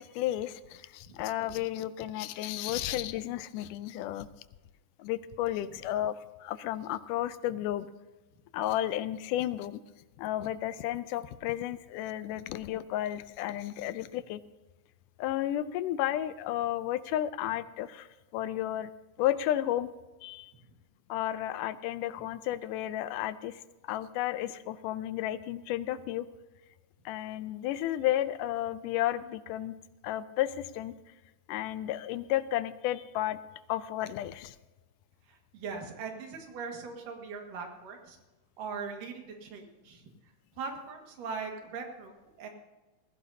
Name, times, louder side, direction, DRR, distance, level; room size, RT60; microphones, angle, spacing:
voice 1, 0.0-4.3 5.0-7.9 8.5-9.8 10.2-14.4 15.2-18.1 18.3-18.9 19.2-19.9 20.2-20.5 21.1-26.3 27.1-29.8 30.0-30.9 31.5-33.4 33.7-34.6, left 13 dB, 85° left, 14 dB, 2.1 m, -32 dB
voice 2, 35.3-38.2 38.6-40.0 40.6-42.5, right 5 dB, 85° right, 3 dB, 3.4 m, -40 dB
19.5 x 16.0 x 2.7 m, 1.2 s
omnidirectional pair, 3.7 m